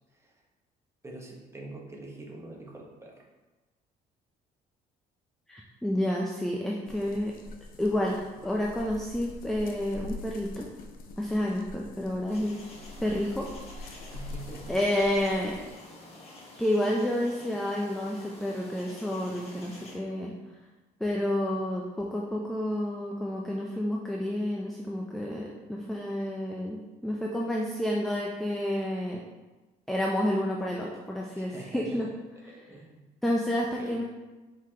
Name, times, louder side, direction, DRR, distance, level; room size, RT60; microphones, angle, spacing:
voice 1, 1.0-3.2 14.1-14.7 31.3-33.0 33.8-34.0, right 2 dB, 15° right, -1 dB, 0.9 m, -45 dB
voice 2, 5.5-7.3 7.8-10.7 11.2-12.5 13.0-13.5 13.8-14.0 14.7-15.6 16.6-20.3 21.0-29.2 29.9-32.1 32.4-32.6 33.2-34.0, left 1 dB, ahead, -1 dB, 0.4 m, -30 dB
sound 1, 6.9-15.7, left 2 dB, 60° left, 0.6 m, -44 dB
sound 2, 12.3-19.9, left 2 dB, 35° left, 1.1 m, -49 dB
4.5 x 3.8 x 2.8 m, 1.2 s
cardioid pair, 110°, 17 cm